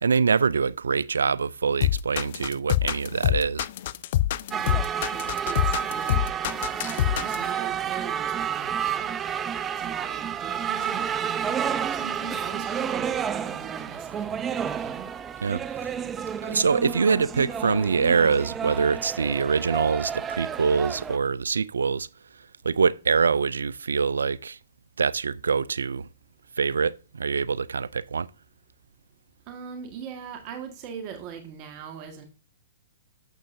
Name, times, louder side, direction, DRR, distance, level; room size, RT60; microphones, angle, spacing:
voice 1, 0.0-3.7 15.4-15.9 16.4-22.1 22.6-24.6 25.0-26.1 26.6-28.3, right 5 dB, 80° right, 0.3 m, -24 dB
sound 1, 1.8-7.5, left 13 dB, 55° left, 0.4 m, -25 dB
sound 2, 4.5-21.2, right 8 dB, 20° right, 0.6 m, -30 dB
voice 2, 4.5-4.8 5.1-6.1 6.8-9.1 9.8-15.1 29.5-32.3, right 7 dB, 40° right, 1.6 m, -41 dB
11.5 x 7.4 x 2.7 m
hypercardioid pair, 125°, 0 cm